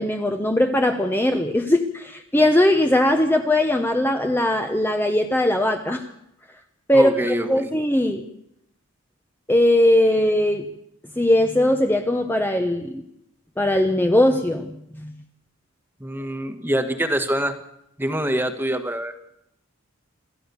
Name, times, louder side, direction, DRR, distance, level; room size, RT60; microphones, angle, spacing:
voice 1, 0.0-6.0 6.9-8.2 9.5-10.6 11.2-13.0 13.6-14.7 15.0-15.1, left 1 dB, 10° left, 4 dB, 1.2 m, -20 dB
voice 2, 6.9-7.7 16.0-17.6 18.0-19.1, right 1 dB, 10° right, 8 dB, 1.6 m, -25 dB
27.5 x 14.5 x 7.0 m, 0.78 s
head